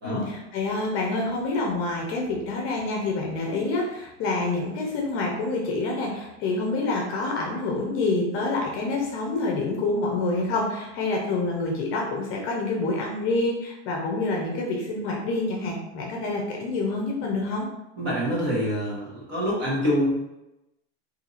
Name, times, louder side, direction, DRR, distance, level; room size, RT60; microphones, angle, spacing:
voice 1, 0.0-17.7, left 2 dB, 40° left, 0 dB, 0.7 m, -27 dB
voice 2, 18.0-20.2, equal, 30° right, -5 dB, 1.4 m, -26 dB
2.8 x 2.7 x 4.0 m, 0.93 s
supercardioid pair, 150°, 34 cm